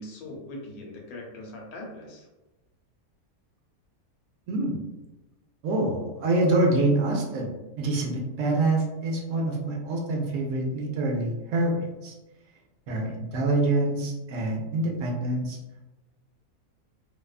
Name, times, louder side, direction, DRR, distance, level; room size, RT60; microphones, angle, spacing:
voice 1, 0.0-2.3, left 1 dB, 75° left, 0 dB, 1.1 m, -41 dB
voice 2, 4.5-4.8 5.6-12.1 12.9-15.6, right 2 dB, 70° right, 0 dB, 0.8 m, -26 dB
2.6 x 2.2 x 2.3 m, 1.0 s
omnidirectional pair, 1.6 m